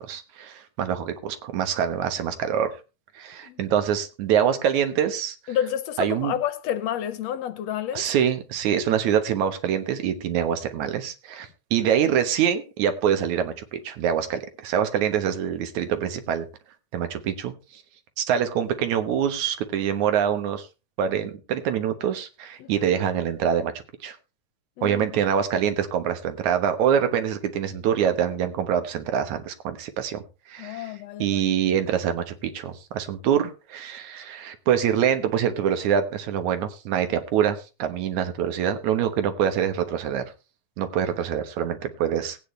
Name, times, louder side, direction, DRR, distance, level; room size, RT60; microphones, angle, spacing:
voice 1, 0.1-2.7 3.2-5.4 6.0-6.3 7.9-16.5 16.9-17.8 18.2-20.7 21.0-23.7 24.0-24.2 24.8-30.2 30.5-30.9 31.2-40.3 40.8-42.4, right 9 dB, 80° right, 2.6 m, -25 dB
voice 2, 5.5-8.1 22.6-22.9 24.8-25.2 30.6-31.4, left 10 dB, 75° left, 1.7 m, -30 dB
18.0 x 9.2 x 3.2 m
omnidirectional pair, 3.4 m